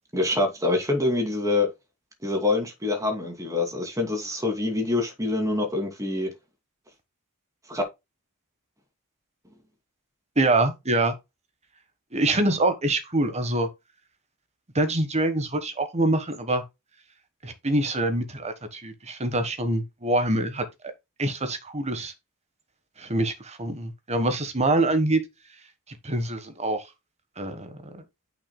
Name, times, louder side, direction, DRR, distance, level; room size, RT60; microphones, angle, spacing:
voice 1, 0.1-1.7 2.2-6.3 7.7-7.8, left 2 dB, 15° right, 2.6 m, -25 dB
voice 2, 10.4-11.1 12.1-13.7 14.7-16.6 17.4-20.6 21.2-22.1 23.0-25.2 25.9-26.8 27.4-28.0, right 2 dB, 30° right, 1.4 m, -25 dB
9.1 x 5.8 x 2.3 m
head